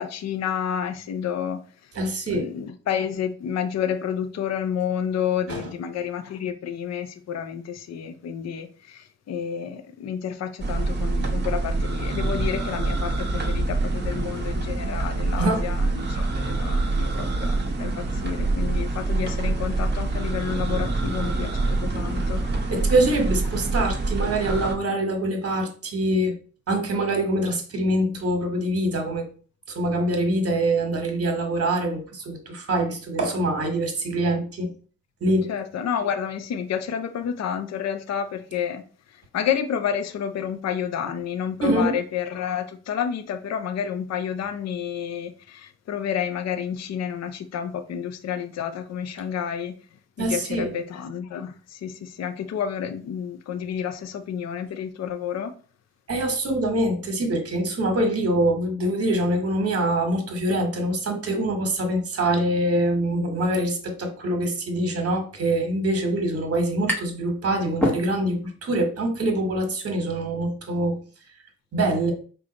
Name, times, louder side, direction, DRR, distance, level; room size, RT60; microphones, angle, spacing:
voice 1, 0.0-1.9 2.3-22.4 35.5-38.8 39.1-49.8 50.2-55.5, left 8 dB, 60° left, 0.5 m, -30 dB
voice 2, 1.9-2.5 5.5-5.7 15.4-15.6 22.7-26.3 26.7-29.3 29.7-34.7 35.2-35.5 41.6-42.0 50.2-50.7 56.1-71.0 71.7-72.1, right 1 dB, 50° right, 1.1 m, -24 dB
sound 1, 10.6-24.7, right 2 dB, 35° right, 0.8 m, -26 dB
sound 2, 65.8-65.9 66.1-67.3 67.6-68.5, left 1 dB, 5° left, 0.8 m, -27 dB
5.0 x 2.3 x 3.9 m
wide cardioid pair, 160°, 30 cm